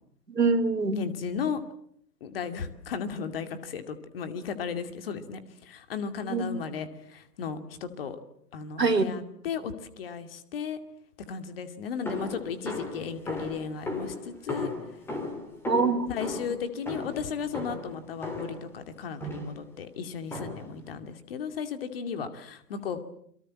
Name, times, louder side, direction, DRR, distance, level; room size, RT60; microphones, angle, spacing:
voice 1, 0.3-1.0 6.2-6.4 8.8-9.1 15.6-16.4, right 4 dB, 75° right, 9 dB, 3.3 m, -25 dB
voice 2, 0.9-1.6 2.2-8.2 8.5-10.8 11.3-14.7 16.1-23.0, left 6 dB, 35° left, 9 dB, 2.5 m, -35 dB
sound 1, 12.1-18.7 19.2-19.7 20.3-20.8, left 2 dB, 5° left, 3.1 m, -36 dB
28.5 x 23.5 x 7.5 m, 0.67 s
figure-of-eight pair, 140°, 49 cm